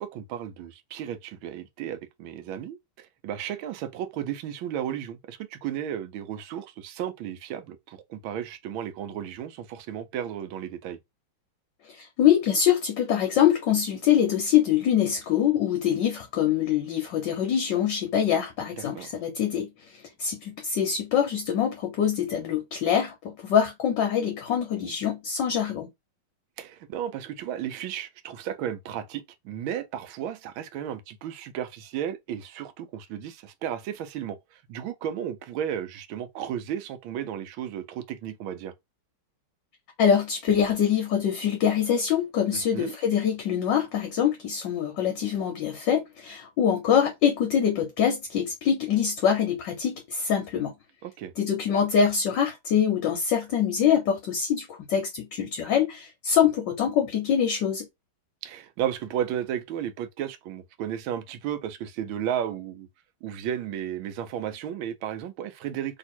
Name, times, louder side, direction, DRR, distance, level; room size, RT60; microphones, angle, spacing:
voice 1, 0.0-11.0 18.8-19.1 26.6-38.7 42.5-42.9 51.0-51.3 58.4-62.9 63.2-66.0, right 10 dB, 75° right, 1.4 m, -34 dB
voice 2, 11.9-19.7 20.2-25.9 40.0-50.7 51.4-57.8, left 8 dB, 65° left, 1.3 m, -24 dB
3.5 x 2.9 x 4.3 m
omnidirectional pair, 2.4 m